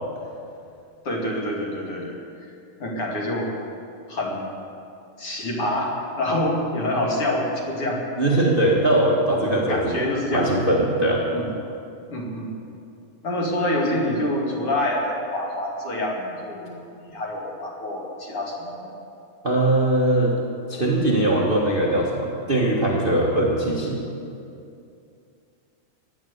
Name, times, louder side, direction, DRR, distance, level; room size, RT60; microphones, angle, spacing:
voice 1, 1.0-2.2 2.8-3.5 4.1-4.5 5.2-8.0 8.6-8.8 9.3-9.4 9.7-10.5 11.3-11.5 12.1-12.5 13.2-18.9, left 1 dB, 45° left, -2 dB, 2.9 m, -26 dB
voice 2, 8.2-10.0 10.3-11.2 19.4-20.3 20.7-24.0, right 1 dB, 70° right, -3 dB, 0.5 m, -21 dB
16.0 x 11.0 x 8.1 m, 2.6 s
omnidirectional pair, 4.1 m